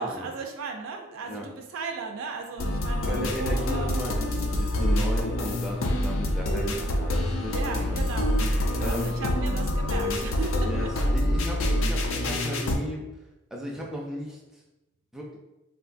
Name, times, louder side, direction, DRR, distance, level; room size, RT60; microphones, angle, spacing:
voice 1, 0.0-4.0 4.3-4.4 7.5-8.4 8.8-11.1, right 4 dB, 70° right, 3 dB, 0.3 m, -36 dB
sound 1, 2.6-12.8, left 1 dB, 70° left, 0.4 m, -26 dB
voice 2, 3.0-8.2 8.8-9.3 10.7-13.1 13.5-14.6 15.1-15.4, equal, ahead, -2 dB, 0.4 m, -35 dB
3.4 x 2.2 x 2.4 m, 1.0 s
head